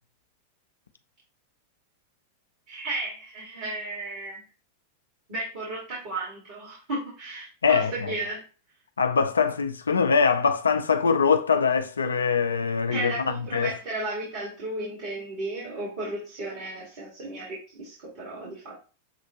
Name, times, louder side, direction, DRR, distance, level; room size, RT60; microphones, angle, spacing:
voice 1, 2.7-4.5 5.3-8.4 12.9-18.7, right 2 dB, 45° right, 2.3 m, -34 dB
voice 2, 7.6-8.1 9.0-13.7, left 5 dB, 75° left, 0.5 m, -23 dB
6.8 x 2.5 x 2.9 m
figure-of-eight pair, 90°, 0 cm